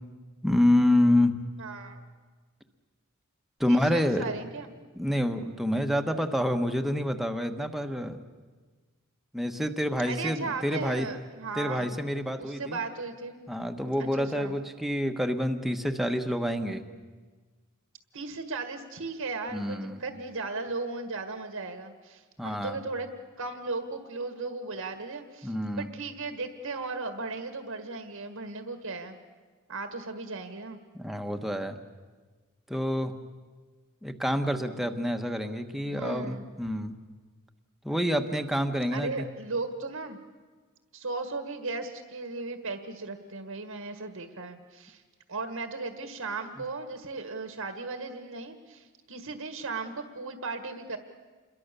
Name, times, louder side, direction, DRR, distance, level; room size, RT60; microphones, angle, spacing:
voice 1, 0.4-1.4 3.6-4.2 4.9-8.2 9.3-11.1 11.6-12.8 13.5-16.8 19.5-20.0 22.4-22.8 25.4-25.9 30.9-31.8 32.7-33.1 34.0-36.9 37.8-39.3, left 1 dB, ahead, 6 dB, 1.2 m, -27 dB
voice 2, 1.6-2.0 3.7-4.7 10.0-11.9 12.4-13.4 14.0-14.5 18.1-23.1 23.4-29.2 29.7-30.8 35.9-36.4 38.9-40.2 40.9-45.0 45.3-51.0, right 3 dB, 75° right, 7 dB, 1.7 m, -36 dB
27.5 x 22.5 x 6.9 m, 1.4 s
head